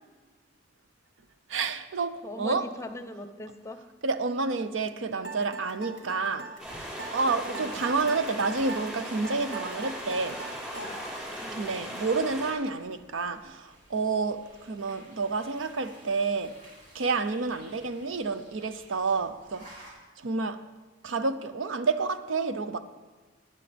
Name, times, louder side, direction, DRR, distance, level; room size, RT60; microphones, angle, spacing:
voice 1, 1.5-2.7 4.0-6.6 7.1-10.4 11.5-16.6 16.9-19.7 20.2-20.6 21.0-22.8, right 4 dB, 90° right, 0.7 m, -29 dB
voice 2, 2.2-3.8 7.4-7.7 11.3-11.7 20.5-20.6, left 2 dB, 15° left, 0.7 m, -41 dB
sound 1, 5.2-11.3, right 3 dB, 65° right, 2.0 m, -40 dB
sound 2, 6.6-12.5, equal, 5° right, 4.0 m, -38 dB
sound 3, 9.7-19.9, right 1 dB, 45° right, 4.5 m, -55 dB
19.0 x 9.5 x 3.4 m
head